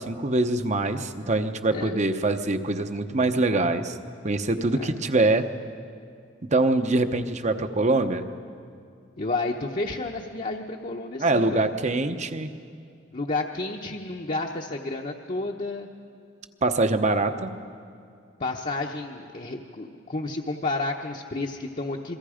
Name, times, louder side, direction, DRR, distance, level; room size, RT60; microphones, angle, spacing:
voice 1, 0.0-4.0 4.2-5.5 6.5-8.2 11.2-12.5 16.6-17.5, right 2 dB, 40° right, 8 dB, 0.9 m, -24 dB
voice 2, 9.2-11.7 13.1-15.9 18.4-22.2, left 2 dB, 40° left, 1 dB, 0.9 m, -31 dB
27.0 x 23.0 x 5.1 m, 2.4 s
head